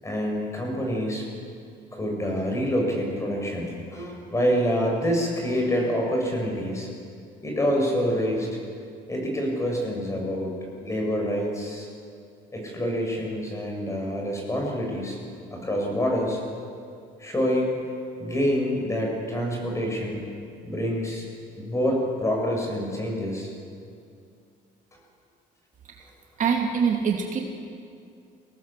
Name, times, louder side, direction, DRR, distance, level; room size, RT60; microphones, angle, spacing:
voice 1, 0.0-1.3 1.9-6.9 7.4-8.6 9.1-11.9 12.5-15.2 15.5-16.4 17.2-17.8 18.2-20.2 20.6-21.2 21.6-23.5, equal, 15° left, 0 dB, 7.1 m, -26 dB
voice 2, 26.4-27.4, right 6 dB, 50° right, 1 dB, 2.6 m, -23 dB
24.0 x 17.5 x 7.5 m, 2.4 s
cardioid pair, 110°, 17 cm